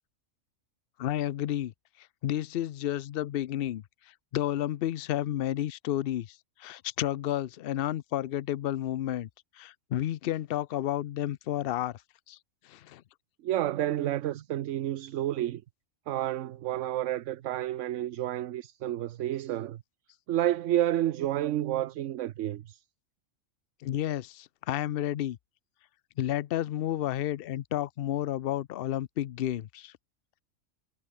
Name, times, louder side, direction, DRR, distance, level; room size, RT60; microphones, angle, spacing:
voice 1, 1.0-1.7 2.0-3.8 4.3-9.3 9.6-12.0 12.3-12.4 12.6-13.0 23.8-25.4 26.2-29.9, left 12 dB, 60° left, 0.6 m, -31 dB
voice 2, 13.4-15.6 16.1-19.8 20.3-22.8, right 13 dB, 70° right, 0.9 m, -30 dB
omnidirectional pair, 1.4 m